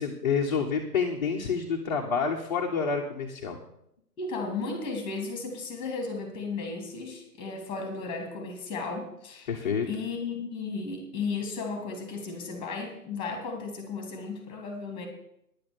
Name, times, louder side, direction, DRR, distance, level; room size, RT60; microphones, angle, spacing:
voice 1, 0.0-3.6 9.5-9.9, left 5 dB, 25° left, 0 dB, 1.1 m, -28 dB
voice 2, 4.2-15.1, left 4 dB, 10° left, 4 dB, 2.3 m, -35 dB
10.0 x 8.6 x 6.9 m, 0.77 s
figure-of-eight pair, 145°, 49 cm